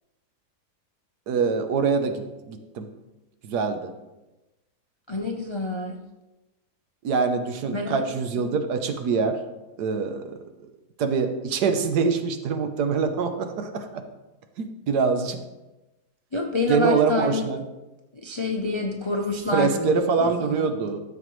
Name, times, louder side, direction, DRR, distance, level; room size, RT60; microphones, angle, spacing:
voice 1, 1.3-2.9 3.4-3.9 7.0-9.4 9.8-10.3 11.0-14.0 14.6-15.4 16.7-17.6 19.5-21.0, right 5 dB, 75° right, 7 dB, 1.4 m, -24 dB
voice 2, 5.1-6.0 7.7-8.0 8.3-8.5 16.3-17.5 18.1-20.7, left 2 dB, 35° left, 1 dB, 0.4 m, -27 dB
13.0 x 7.4 x 3.1 m, 1.1 s
omnidirectional pair, 1.7 m